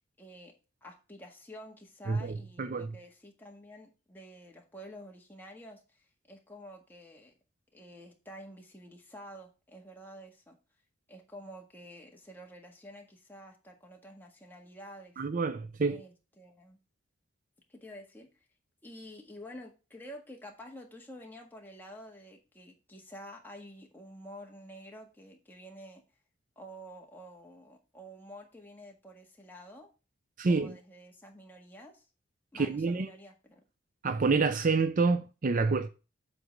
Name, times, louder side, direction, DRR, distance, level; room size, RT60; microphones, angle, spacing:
voice 1, 0.2-0.5 0.8-7.3 7.7-10.6 11.1-15.2 15.9-16.8 17.7-18.5 18.8-26.0 26.6-29.9 30.5-32.0 32.5-33.6, equal, 10° left, 1.6 m, -49 dB
voice 2, 2.1-2.9 15.2-16.0 30.4-30.8 32.5-33.1 34.0-35.9, right 4 dB, 45° right, 0.5 m, -28 dB
7.8 x 3.9 x 6.4 m
head